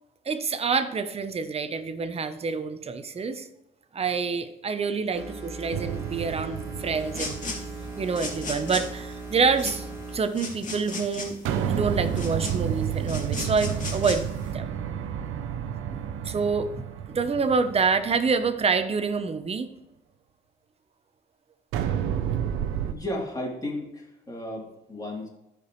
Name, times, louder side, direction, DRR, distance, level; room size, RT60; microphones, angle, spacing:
voice 1, 0.3-3.5 3.9-7.4 8.0-9.9 10.1-11.4 11.6-14.2 14.5-14.7 16.2-19.7, right 5 dB, 30° right, 9 dB, 0.8 m, -27 dB
sound 1, 5.1-10.2, right 3 dB, 15° right, 2.4 m, -39 dB
sound 2, 5.7-8.3 11.4-18.7 21.7-22.9, right 9 dB, 90° right, 0.7 m, -31 dB
sound 3, 7.0-14.5, left 3 dB, 40° left, 2.4 m, -37 dB
voice 2, 22.8-25.3, left 1 dB, 20° left, -2 dB, 3.1 m, -34 dB
13.5 x 5.1 x 3.1 m, 0.88 s
cardioid pair, 90°, 20 cm